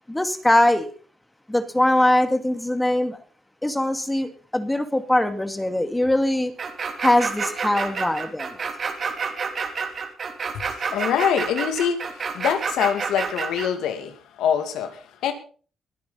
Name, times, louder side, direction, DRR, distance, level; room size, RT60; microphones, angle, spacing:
voice 1, 0.1-0.9 1.5-3.2 3.6-6.5 7.0-8.7, left 1 dB, 10° left, 9 dB, 2.3 m, -22 dB
sound 1, 6.6-13.7, right 5 dB, 50° right, 3.2 m, -28 dB
voice 2, 10.5-12.0 12.3-15.3, left 8 dB, 85° left, 8 dB, 2.6 m, -24 dB
22.0 x 9.6 x 4.1 m, 0.40 s
cardioid pair, 90°, 0 cm